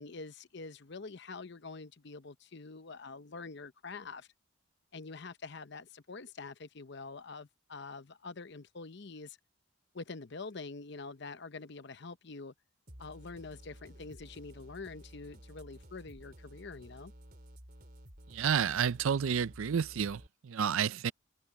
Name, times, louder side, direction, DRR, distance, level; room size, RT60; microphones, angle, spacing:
voice 1, 0.0-4.3 4.9-9.4 9.9-12.5 13.0-17.1, left 4 dB, 55° left, 0.8 m, -46 dB
sound 1, 12.9-20.3, equal, 45° right, 3.9 m, -53 dB
voice 2, 18.3-21.1, right 7 dB, 75° right, 0.5 m, -30 dB
head